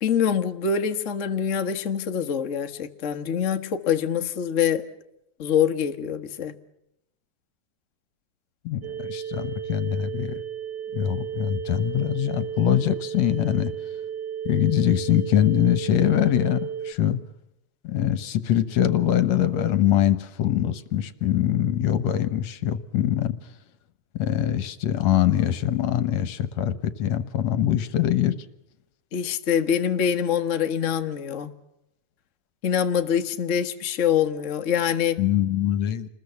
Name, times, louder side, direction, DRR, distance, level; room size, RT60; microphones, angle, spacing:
voice 1, 0.0-4.8 5.4-6.5 29.1-31.5 32.6-35.2, left 8 dB, 45° left, 6 dB, 0.9 m, -24 dB
voice 2, 8.7-10.4 10.9-13.7 14.5-17.2 17.8-23.4 24.2-28.4 35.2-36.1, left 11 dB, 65° left, 14 dB, 2.1 m, -23 dB
sound 1, 8.8-16.9, right 9 dB, 60° right, 2.1 m, -33 dB
28.0 x 21.0 x 7.0 m, 0.84 s
omnidirectional pair, 3.5 m